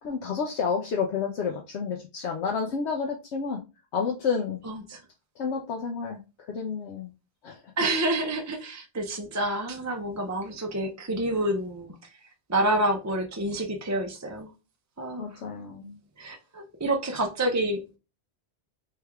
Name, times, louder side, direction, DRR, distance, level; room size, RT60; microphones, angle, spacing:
voice 1, 0.0-3.6 3.9-4.6 5.4-6.2 6.5-7.1 7.4-7.6 15.2-16.0, left 5 dB, 75° left, 2 dB, 0.9 m, -30 dB
voice 2, 4.6-5.0 7.8-11.9 12.5-14.5 15.0-15.3 16.2-18.0, right 1 dB, 25° right, 3 dB, 0.4 m, -28 dB
3.5 x 3.3 x 3.4 m, 0.29 s
omnidirectional pair, 1.2 m